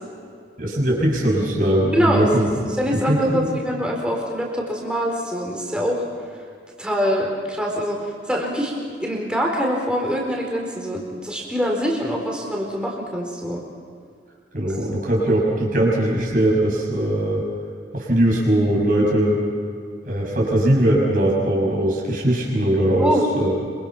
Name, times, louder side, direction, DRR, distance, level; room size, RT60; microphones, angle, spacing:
voice 1, 0.6-3.6 14.5-17.4 17.9-19.4 20.0-23.5, right 1 dB, 50° right, -2 dB, 6.2 m, -20 dB
voice 2, 1.9-2.3 2.7-6.0 6.8-8.7 9.0-13.6 23.0-23.3, equal, 5° right, -1 dB, 4.3 m, -24 dB
26.5 x 25.0 x 6.1 m, 2.3 s
head